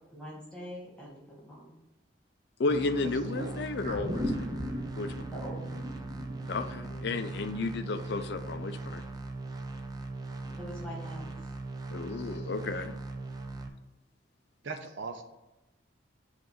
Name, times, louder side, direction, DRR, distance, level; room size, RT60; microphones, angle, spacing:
voice 1, 0.1-1.7 5.3-5.8 6.8-7.2 10.4-11.5, equal, 5° left, -5 dB, 1.5 m, -44 dB
voice 2, 2.6-4.3 5.0-5.3 6.5-9.0 11.9-13.0, left 3 dB, 55° left, 8 dB, 0.4 m, -33 dB
sound 1, 2.7-13.7, right 3 dB, 20° right, 0.5 m, -40 dB
sound 2, 3.8-8.4 8.8-8.9, equal, 40° right, 1.2 m, -38 dB
voice 3, 14.6-15.2, right 4 dB, 65° right, 5 dB, 0.8 m, -38 dB
7.6 x 2.6 x 5.6 m, 1.0 s
head